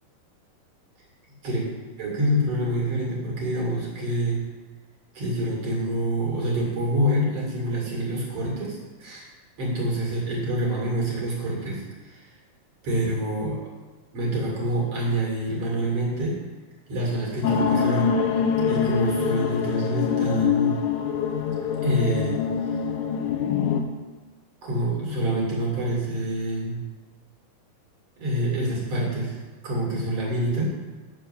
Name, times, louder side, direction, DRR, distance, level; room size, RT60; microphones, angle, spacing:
voice 1, 2.0-4.4 5.1-9.3 9.6-12.2 12.8-13.6 14.1-16.4 16.9-18.4 18.7-20.8 21.8-22.4 24.6-26.8 28.2-29.4 29.6-30.7, right 1 dB, 45° right, -3 dB, 2.9 m, -26 dB
sound 1, 17.4-23.8, left 7 dB, 75° left, 1.9 m, -24 dB
6.7 x 6.4 x 7.3 m, 1.3 s
omnidirectional pair, 4.1 m